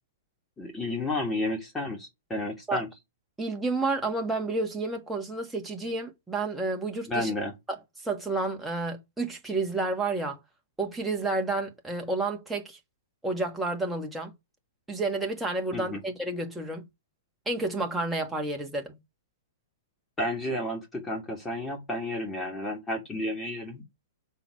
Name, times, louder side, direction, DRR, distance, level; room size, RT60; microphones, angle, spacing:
voice 1, 0.6-2.9 7.1-7.5 15.7-16.0 20.2-23.8, left 1 dB, 15° left, 2.3 m, -31 dB
voice 2, 3.4-7.3 7.7-7.8 8.0-10.4 10.8-12.8 13.2-14.3 14.9-16.8 17.5-19.0, right 2 dB, 5° right, 1.8 m, -30 dB
6.9 x 4.5 x 5.9 m
figure-of-eight pair, 110°, 0 cm